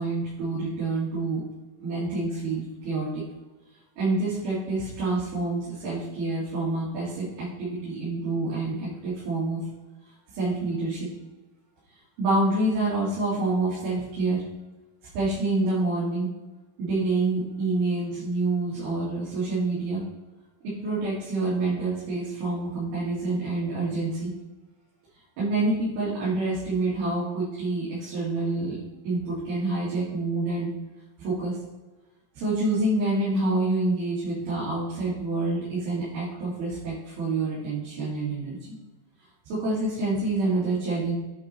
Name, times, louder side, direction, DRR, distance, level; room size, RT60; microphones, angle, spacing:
voice 1, 0.0-1.4 1.8-3.2 4.0-9.6 10.3-11.1 12.2-14.4 15.1-16.3 16.8-20.0 20.8-24.3 25.4-28.8 29.0-30.7 31.2-31.6 32.4-38.6 39.5-41.1, right 2 dB, 80° right, -9 dB, 4.1 m, -27 dB
9.0 x 4.4 x 4.3 m, 1.2 s
omnidirectional pair, 4.4 m